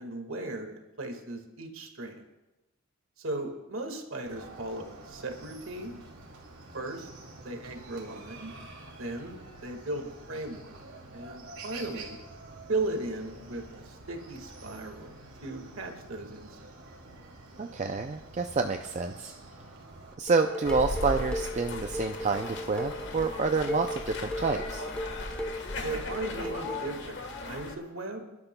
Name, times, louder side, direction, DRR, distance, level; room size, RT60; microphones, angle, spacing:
voice 1, 0.0-2.2 3.2-6.0 6.7-7.1 7.4-8.5 9.0-10.7 11.1-12.2 12.7-15.2 15.4-16.5 25.8-28.3, right 2 dB, 65° right, 4 dB, 1.7 m, -37 dB
Chicken rooster, 4.3-20.1, right 2 dB, 80° right, 2.6 m, -48 dB
voice 2, 17.6-19.3 20.2-24.9, right 4 dB, 30° right, 5 dB, 0.4 m, -28 dB
Dishes pots and pans, 20.3-26.9, equal, 5° left, 0.6 m, -37 dB
sound 1, 20.6-27.8, left 2 dB, 55° left, 1.4 m, -37 dB
28.5 x 12.0 x 2.2 m, 1.0 s
head